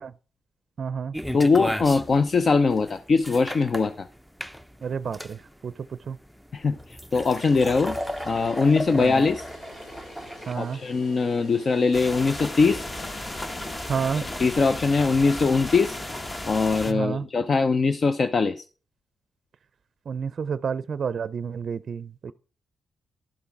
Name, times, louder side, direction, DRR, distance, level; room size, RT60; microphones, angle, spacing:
voice 1, 0.8-1.2 4.8-5.7 6.1-6.2 9.0-9.2 10.5-10.8 13.9-14.3 16.9-17.3 20.1-22.3, right 6 dB, 60° right, 0.4 m, -30 dB
sound 1, 1.1-10.5, equal, ahead, 0.6 m, -35 dB
voice 2, 1.3-4.1 6.5-8.0 8.3-9.5 10.5-12.8 14.1-16.0 16.5-18.6, left 4 dB, 50° left, 0.6 m, -22 dB
sound 2, 7.2-13.7, left 1 dB, 90° left, 7.0 m, -47 dB
sound 3, 11.9-16.9, left 1 dB, 25° left, 1.0 m, -34 dB
11.5 x 6.9 x 4.7 m
cardioid pair, 60°, 0 cm